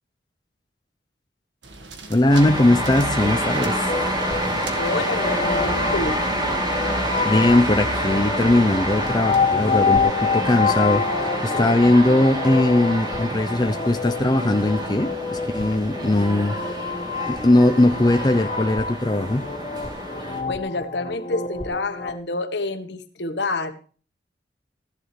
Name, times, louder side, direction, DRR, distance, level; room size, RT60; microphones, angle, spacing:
sound 1, 1.6-9.8, right 2 dB, 85° right, 1.8 m, -41 dB
voice 1, 2.1-3.8 7.2-11.0 11.4-16.6 17.3-19.4, left 1 dB, 25° left, 7 dB, 0.7 m, -19 dB
sound 2, 2.3-20.4, right 1 dB, 25° right, 3.1 m, -27 dB
sound 3, 3.9-22.2, left 5 dB, 40° left, 1.9 m, -27 dB
voice 2, 4.7-6.2 20.5-23.7, left 2 dB, 70° left, 8 dB, 1.5 m, -28 dB
14.5 x 11.0 x 3.3 m, 0.40 s
head